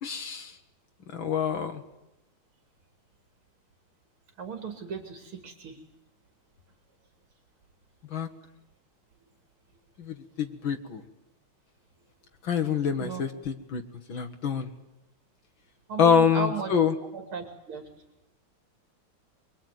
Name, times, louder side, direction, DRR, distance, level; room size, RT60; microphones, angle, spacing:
voice 1, 0.0-0.5 1.1-1.8 8.1-8.3 10.0-11.0 12.4-13.8 14.1-14.7 16.0-16.9, left 7 dB, 70° left, 5 dB, 2.2 m, -26 dB
voice 2, 4.4-5.8 13.0-13.2 15.9-16.7 17.1-17.9, right 5 dB, 80° right, 6 dB, 3.5 m, -35 dB
24.0 x 23.5 x 9.5 m, 0.91 s
omnidirectional pair, 2.3 m